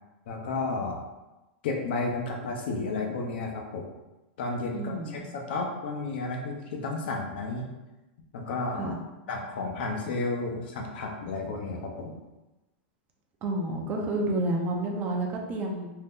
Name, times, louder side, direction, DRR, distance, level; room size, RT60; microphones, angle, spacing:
voice 1, 0.3-1.0 1.6-3.8 4.4-7.7 8.3-8.9 9.3-12.2, left 3 dB, 65° left, 1 dB, 0.6 m, -32 dB
voice 2, 4.7-5.2 8.8-8.9 13.4-15.9, right 1 dB, 30° right, 0 dB, 0.5 m, -30 dB
2.7 x 2.1 x 3.5 m, 1.0 s
supercardioid pair, 145°, 6 cm